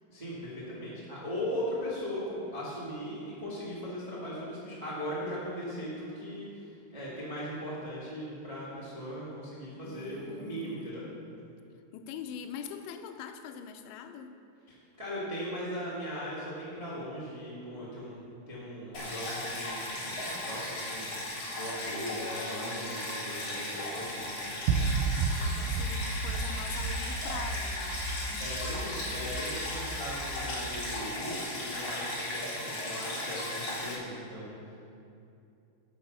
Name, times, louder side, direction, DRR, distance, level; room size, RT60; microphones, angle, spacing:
voice 1, 0.1-11.0 14.7-18.2 18.5-21.2 21.6-24.6 28.4-34.8, equal, 65° right, -8 dB, 0.4 m, -38 dB
voice 2, 9.8-11.3 11.9-14.3 25.3-28.0, left 7 dB, 90° left, 6 dB, 3.1 m, -43 dB
Stream, 18.9-33.9, left 1 dB, 40° left, 2.9 m, -36 dB
Chink clink, 22.2-26.6, left 1 dB, 60° left, 0.9 m, -51 dB
sound 1, 24.7-31.0, right 4 dB, 90° right, 3.0 m, -33 dB
10.5 x 6.8 x 6.8 m, 2.6 s
omnidirectional pair, 5.3 m